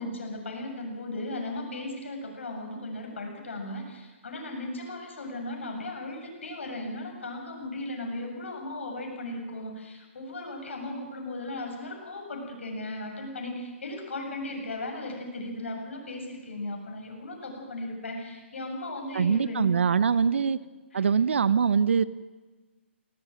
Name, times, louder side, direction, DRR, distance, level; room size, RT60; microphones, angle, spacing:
voice 1, 0.0-19.6 20.9-21.1, left 2 dB, 70° left, 2 dB, 7.4 m, -36 dB
voice 2, 19.1-20.6 20.9-22.0, right 6 dB, 70° right, 18 dB, 0.8 m, -23 dB
19.0 x 18.5 x 9.0 m, 1.3 s
figure-of-eight pair, 135°, 7 cm